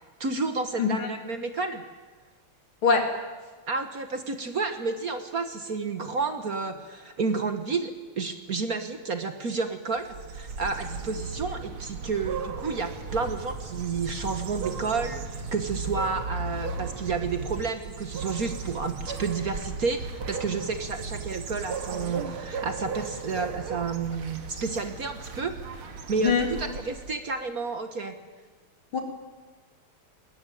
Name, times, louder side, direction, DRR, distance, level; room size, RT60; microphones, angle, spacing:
voice 1, 0.2-1.8 3.7-10.1 10.3-28.1, right 4 dB, 45° right, 8 dB, 1.6 m, -31 dB
voice 2, 0.8-1.1 2.8-3.0 26.2-26.5 28.9-29.0, left 5 dB, 70° left, 3 dB, 3.9 m, -22 dB
sound 1, 10.0-27.3, right 4 dB, 75° right, 2.7 m, -36 dB
21.0 x 20.0 x 9.3 m, 1.3 s
omnidirectional pair, 2.4 m